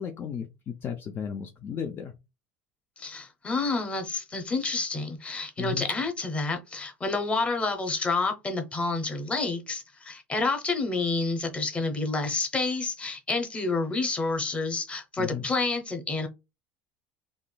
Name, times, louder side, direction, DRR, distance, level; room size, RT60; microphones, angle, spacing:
voice 1, 0.0-2.1 5.6-5.9 15.2-15.4, left 8 dB, 40° left, 0.4 m, -34 dB
voice 2, 3.0-16.3, left 3 dB, 20° left, 0.9 m, -29 dB
3.5 x 2.5 x 2.2 m
supercardioid pair, 115°, 6 cm